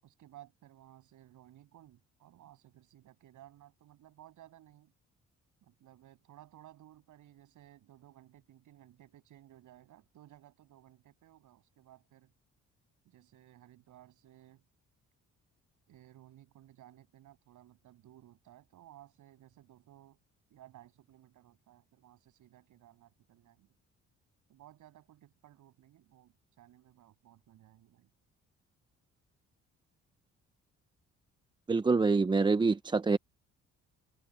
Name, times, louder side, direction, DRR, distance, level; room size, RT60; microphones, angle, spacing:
voice 1, 0.0-4.9 5.6-12.3 13.0-14.6 15.9-20.2 20.5-23.7 24.5-28.1, right 13 dB, 80° right, 7.4 m, -58 dB
voice 2, 31.7-33.2, right 4 dB, 15° right, 0.4 m, -26 dB
cardioid pair, 90°, 30 cm